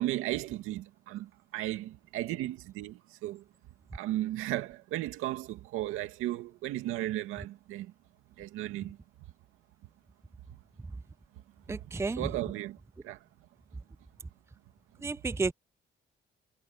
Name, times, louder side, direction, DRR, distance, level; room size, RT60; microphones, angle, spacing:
voice 1, 0.0-3.4 3.9-7.9 8.4-9.0 11.7-12.8 13.0-13.2, right 15 dB, 90° right, 2.2 m, -35 dB
voice 2, 11.7-12.2 15.0-15.5, right 3 dB, 15° right, 0.5 m, -31 dB
supercardioid pair, 65°, 21 cm